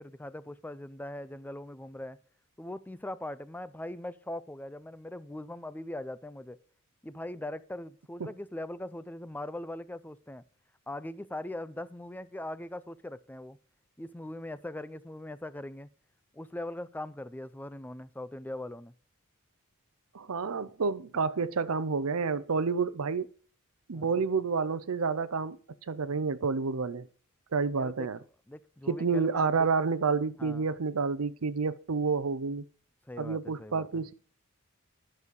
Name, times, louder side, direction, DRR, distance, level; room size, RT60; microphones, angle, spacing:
voice 1, 0.0-2.2 2.6-6.6 7.0-10.4 10.9-13.6 14.0-15.9 16.3-18.9 23.9-24.1 27.7-28.1 28.5-29.7 30.4-30.7 33.1-34.0, left 1 dB, 10° left, 0.4 m, -41 dB
voice 2, 20.1-23.3 23.9-25.6 25.9-27.1 27.5-28.2 28.9-32.6 33.2-34.1, right 5 dB, 85° right, 0.6 m, -29 dB
11.0 x 6.4 x 5.3 m
head